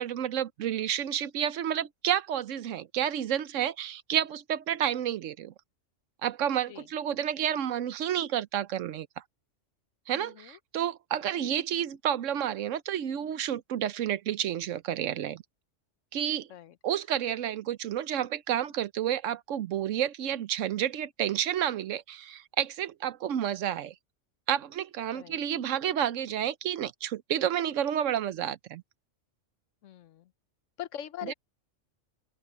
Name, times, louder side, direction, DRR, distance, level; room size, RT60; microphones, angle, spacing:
voice 1, 0.0-5.5 6.2-9.1 10.1-15.4 16.1-16.5 16.8-23.9 24.5-28.8 31.3-31.4, right 10 dB, 85° right, 1.1 m, -30 dB
voice 2, 10.1-10.6 11.4-11.5 16.5-16.8 25.1-25.4 29.8-30.3 30.8-31.3, left 11 dB, 80° left, 1.1 m, -42 dB
open air
omnidirectional pair, 1.3 m